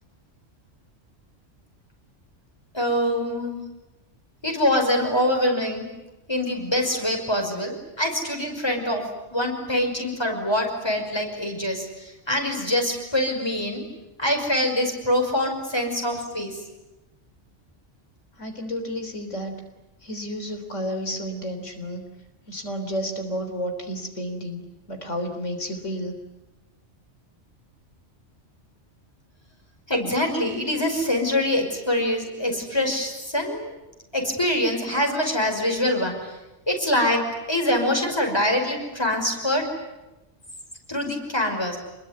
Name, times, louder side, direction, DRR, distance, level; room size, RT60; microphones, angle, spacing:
voice 1, 2.7-3.6 4.4-5.9 6.3-9.0 9.3-13.8 14.2-16.6 29.9-33.7 34.1-36.4 36.7-37.2 37.5-39.7 40.9-41.8, left 1 dB, 20° left, 3 dB, 5.5 m, -24 dB
voice 2, 18.4-19.6 20.0-22.0 22.5-24.6 24.9-26.2, equal, 90° left, 5 dB, 3.9 m, -31 dB
28.5 x 21.5 x 9.6 m, 1.0 s
omnidirectional pair, 1.2 m